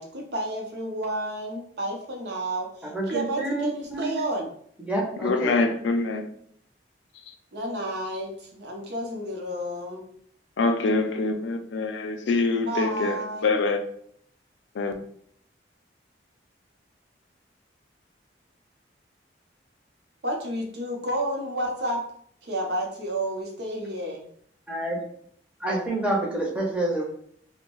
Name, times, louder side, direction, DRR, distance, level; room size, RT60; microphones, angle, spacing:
voice 1, 0.0-4.5 7.5-10.0 12.6-13.6 20.2-22.0 22.4-24.3, right 1 dB, 65° right, 0.6 m, -31 dB
voice 2, 2.8-4.2 4.8-5.6 24.7-25.0 25.6-27.0, right 1 dB, 5° right, 0.5 m, -28 dB
voice 3, 5.2-6.3 10.6-13.8 14.8-14.9, left 3 dB, 80° left, 0.4 m, -25 dB
2.6 x 2.1 x 2.9 m
head